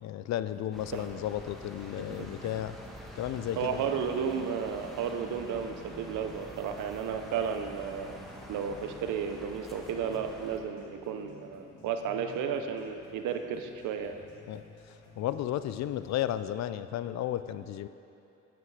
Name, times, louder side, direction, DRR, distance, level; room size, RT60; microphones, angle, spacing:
voice 1, 0.0-2.7 3.2-3.8 14.5-14.6 15.2-17.9, left 12 dB, 65° left, 13 dB, 0.5 m, -33 dB
sound 1, 0.5-16.5, left 2 dB, 85° left, 1.8 m, -55 dB
sound 2, 0.7-10.6, equal, ahead, 1.2 m, -47 dB
voice 2, 2.1-2.5 3.6-8.2 8.5-14.2, right 7 dB, 80° right, 6 dB, 0.8 m, -33 dB
9.1 x 7.8 x 4.8 m, 2.8 s
cardioid pair, 90°, 30 cm